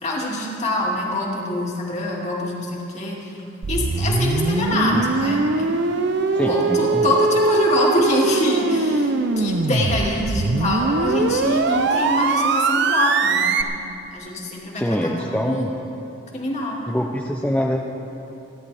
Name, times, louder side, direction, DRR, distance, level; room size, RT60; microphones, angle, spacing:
voice 1, 0.0-3.3 3.7-5.7 6.5-13.5 14.1-15.8 16.3-16.8, left 1 dB, 35° left, -3 dB, 2.5 m, -24 dB
sound 1, 3.6-13.6, right 3 dB, 60° right, 0.6 m, -21 dB
voice 2, 6.3-7.1 14.7-15.7 16.9-17.8, equal, 5° left, -1 dB, 0.6 m, -24 dB
29.0 x 11.0 x 3.4 m, 2.9 s
head